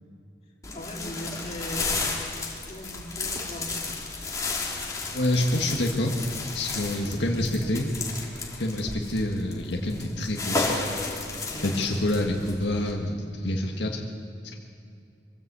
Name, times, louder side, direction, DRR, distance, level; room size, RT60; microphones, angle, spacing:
sound 1, 0.6-12.9, left 3 dB, 20° left, 3.0 m, -33 dB
voice 1, 0.7-2.0 2.7-4.1 6.8-8.0 11.5-11.7, equal, 35° left, -2 dB, 3.5 m, -39 dB
voice 2, 5.1-7.9 8.6-11.0 11.6-14.0, left 1 dB, 75° left, 0 dB, 1.7 m, -27 dB
23.5 x 15.5 x 8.2 m, 2.5 s
head